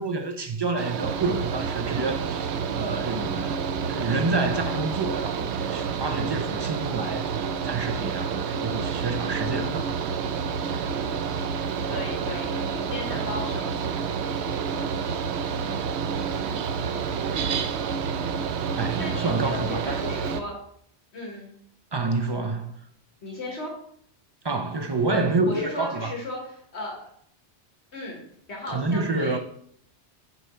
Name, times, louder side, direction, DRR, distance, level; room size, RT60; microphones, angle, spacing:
voice 1, 0.0-9.9 18.7-20.1 21.9-22.8 24.4-26.1 28.7-29.4, right 3 dB, 40° right, 0.3 m, -28 dB
Mechanical fan, 0.8-20.4, right 6 dB, 75° right, 0.9 m, -29 dB
voice 2, 11.8-13.7 19.0-20.6 21.1-21.5 23.2-23.7 25.1-25.2 25.5-27.1 27.9-28.2 28.5-29.4, left 2 dB, 70° left, 1.8 m, -36 dB
6.8 x 4.7 x 4.3 m
omnidirectional pair, 1.1 m